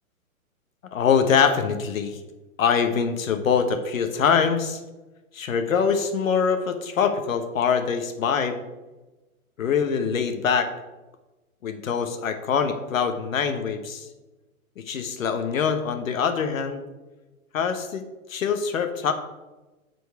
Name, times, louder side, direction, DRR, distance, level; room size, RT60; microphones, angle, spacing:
voice 1, 0.9-2.2 2.6-4.8 5.3-8.6 9.6-10.7 11.6-14.1 14.8-16.8 17.5-18.0 18.3-19.1, left 6 dB, 65° left, 7 dB, 1.1 m, -24 dB
11.0 x 4.6 x 4.7 m, 1.1 s
hypercardioid pair, 140°, 43 cm